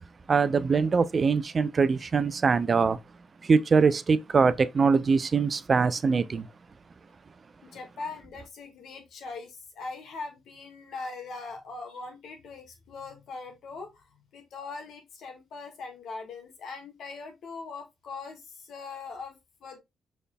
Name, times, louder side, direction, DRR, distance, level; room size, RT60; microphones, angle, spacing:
voice 1, 0.3-3.0 3.4-6.5, right 5 dB, 45° right, 0.5 m, -23 dB
voice 2, 7.6-19.8, left 4 dB, 70° left, 1.6 m, -41 dB
5.0 x 4.2 x 2.2 m
supercardioid pair, 50°, 0 cm